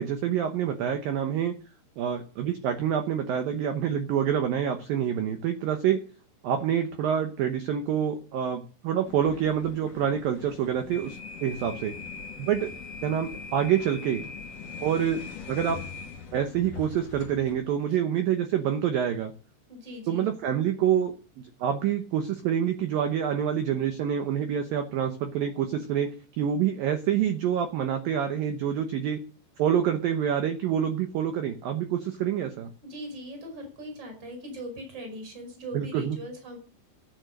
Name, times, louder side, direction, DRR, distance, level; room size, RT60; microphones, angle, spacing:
voice 1, 0.0-1.5 2.0-6.0 6.4-11.9 12.4-12.7 13.0-14.3 14.8-15.2 15.5-15.8 16.3-19.3 20.1-26.1 26.4-29.2 29.6-32.7 35.7-36.2, right 9 dB, 90° right, 7 dB, 2.0 m, -27 dB
sound 1, 9.1-17.6, left 5 dB, 45° left, 2.6 m, -41 dB
voice 2, 19.7-20.3 32.8-36.6, equal, 20° right, 4 dB, 5.4 m, -40 dB
14.0 x 8.9 x 6.6 m, 0.39 s
omnidirectional pair, 5.6 m